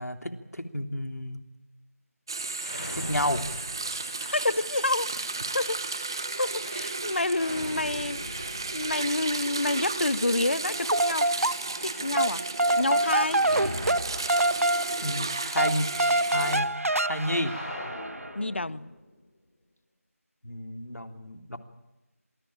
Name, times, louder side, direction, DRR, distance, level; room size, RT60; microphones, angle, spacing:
voice 1, 0.0-1.4 2.7-3.4 15.0-15.9 16.3-16.7 17.0-17.6 20.4-21.6, left 1 dB, 90° left, 3.4 m, -31 dB
sound 1, 2.3-16.6, right 3 dB, 15° right, 1.1 m, -34 dB
sound 2, 2.5-4.5 7.2-10.2 13.3-14.7 15.0-15.1 17.4-19.1, left 1 dB, 30° left, 6.5 m, -41 dB
voice 2, 4.2-5.3 5.5-11.5 11.8-12.4 12.8-13.5 18.3-18.9, left 2 dB, 45° left, 0.9 m, -29 dB
sound 3, 10.7-11.9 12.2-18.3, right 1 dB, 65° right, 0.9 m, -26 dB
27.0 x 19.5 x 8.9 m
figure-of-eight pair, 175°, 8 cm